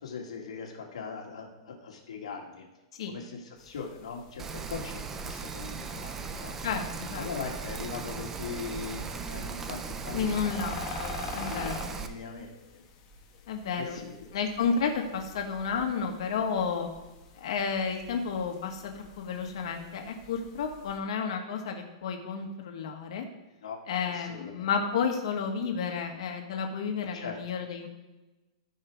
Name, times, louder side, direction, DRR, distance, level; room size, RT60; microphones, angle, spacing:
voice 1, 0.0-2.7 3.1-6.5 7.2-10.5 11.3-12.8 13.8-14.1 23.6-24.7 25.0-25.1 27.1-27.4, left 5 dB, 90° left, 0 dB, 2.0 m, -40 dB
sound 1, 3.6-21.0, left 4 dB, 25° left, 1.2 m, -47 dB
Rain, 4.4-12.1, right 5 dB, 10° right, 0.5 m, -38 dB
voice 2, 6.6-7.3 10.1-11.9 13.5-14.0 14.3-16.9 17.4-23.2 23.9-27.9, left 6 dB, 60° left, 3 dB, 1.6 m, -31 dB
14.0 x 5.5 x 3.6 m, 1.1 s
supercardioid pair, 170°, 3 cm